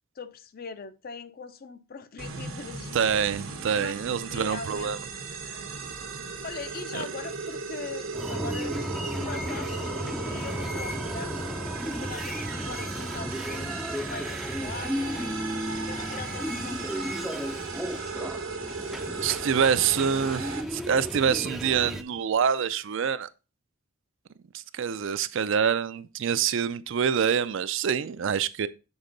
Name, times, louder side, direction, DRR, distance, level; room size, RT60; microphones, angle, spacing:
voice 1, 0.1-3.2 3.8-4.9 6.4-11.5 11.8-13.8 14.1-17.2, left 5 dB, 45° left, 0.5 m, -42 dB
sound 1, 2.2-20.6, right 4 dB, 90° right, 1.1 m, -37 dB
voice 2, 2.9-5.0 6.9-7.0 19.2-23.3 24.5-28.7, right 7 dB, 65° right, 0.4 m, -26 dB
sound 2, 8.1-22.0, equal, ahead, 0.4 m, -34 dB
7.1 x 3.7 x 3.9 m
head